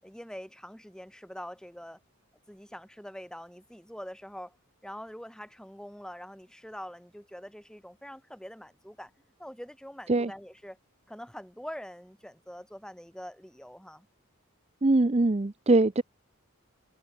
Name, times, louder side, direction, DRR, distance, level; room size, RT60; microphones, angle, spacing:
voice 1, 0.0-2.0 2.5-4.6 4.8-9.1 9.4-10.8 11.1-14.1, equal, 5° left, 6.9 m, -44 dB
voice 2, 14.8-16.0, right 2 dB, 30° right, 0.6 m, -22 dB
head